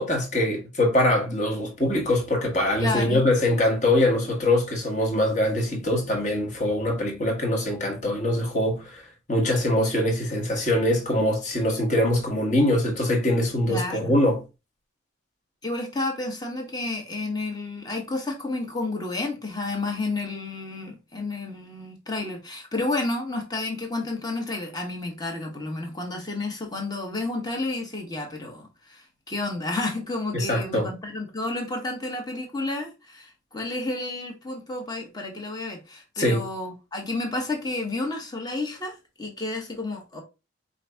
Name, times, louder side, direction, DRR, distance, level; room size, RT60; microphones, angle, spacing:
voice 1, 0.0-9.0 9.3-14.4 30.3-30.9 36.2-36.4, left 1 dB, 35° left, 1.2 m, -23 dB
voice 2, 2.8-3.3 13.7-14.2 15.6-40.2, left 2 dB, 20° left, 1.0 m, -31 dB
4.9 x 2.6 x 3.3 m
head